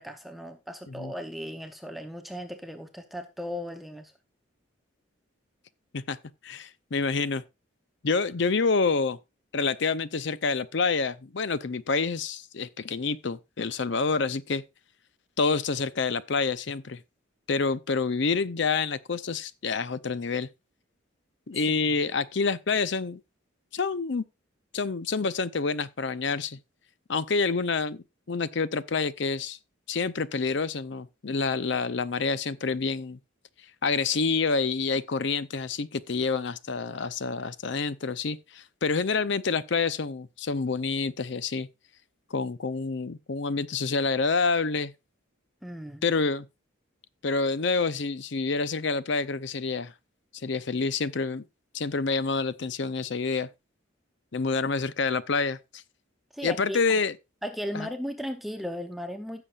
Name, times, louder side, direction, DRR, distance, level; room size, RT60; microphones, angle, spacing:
voice 1, 0.0-4.1 21.7-21.8 45.6-46.0 56.3-56.8 57.4-59.4, equal, ahead, 0.7 m, -36 dB
voice 2, 6.4-7.4 8.0-9.2 9.5-14.6 15.4-17.0 17.5-20.5 21.5-23.2 23.7-24.2 24.7-26.6 27.1-29.6 29.9-33.2 33.8-41.7 42.3-44.9 46.0-46.5 47.2-49.9 50.4-51.4 51.7-53.5 54.3-55.8 56.4-57.1 57.7-57.9, left 4 dB, 55° left, 0.6 m, -28 dB
15.5 x 7.0 x 2.4 m
head